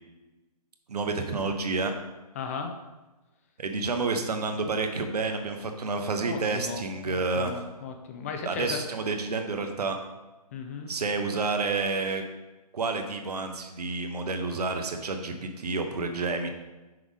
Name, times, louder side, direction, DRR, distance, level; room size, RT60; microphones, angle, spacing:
voice 1, 0.9-1.9 3.6-7.7 8.4-10.0 10.9-12.2 12.7-16.5, right 3 dB, 70° right, 5 dB, 1.0 m, -29 dB
voice 2, 2.4-2.7 6.2-8.8 10.5-10.9, left 5 dB, 20° left, 4 dB, 0.4 m, -36 dB
6.1 x 3.9 x 4.9 m, 1.1 s
hypercardioid pair, 150°, 21 cm